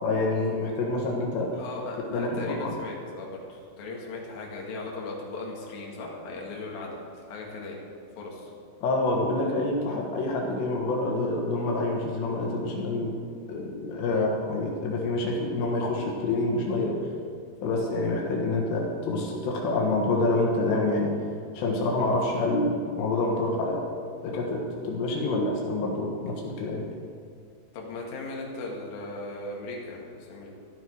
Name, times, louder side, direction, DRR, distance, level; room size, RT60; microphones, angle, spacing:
voice 1, 0.0-1.5 2.1-2.8 8.8-13.1 13.5-17.0 17.6-21.1 21.6-23.8 24.2-26.9, left 2 dB, 85° left, -1 dB, 3.8 m, -27 dB
voice 2, 1.6-7.8 8.2-8.5 14.1-14.3 27.7-30.5, left 2 dB, 60° left, -2 dB, 3.5 m, -37 dB
13.0 x 13.0 x 4.7 m, 2.3 s
omnidirectional pair, 4.9 m